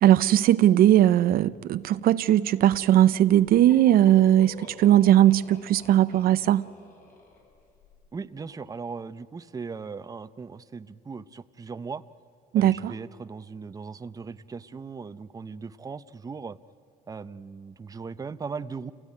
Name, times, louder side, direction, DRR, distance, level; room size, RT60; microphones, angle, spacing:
voice 1, 0.0-6.7 12.5-12.9, right 12 dB, 60° right, 0.5 m, -19 dB
Laughter, 3.3-7.9, left 1 dB, 55° left, 6.7 m, -47 dB
voice 2, 8.1-12.0 12.5-16.6 17.1-18.9, right 5 dB, 20° right, 0.7 m, -38 dB
27.5 x 17.0 x 9.7 m
cardioid pair, 110°, 17 cm